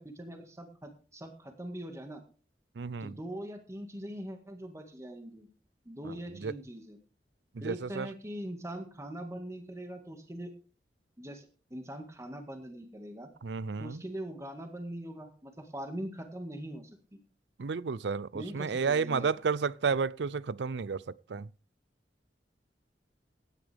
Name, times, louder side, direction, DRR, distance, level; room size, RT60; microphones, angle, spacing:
voice 1, 0.0-2.2 3.0-5.5 5.9-7.0 7.6-10.5 11.2-11.5 11.7-13.3 13.8-16.9 18.3-19.3, right 1 dB, 15° right, 1.8 m, -42 dB
voice 2, 2.8-3.2 6.0-6.5 7.5-8.1 13.4-14.0 17.6-21.0 21.3-21.5, right 5 dB, 80° right, 0.5 m, -32 dB
17.0 x 9.8 x 3.5 m
head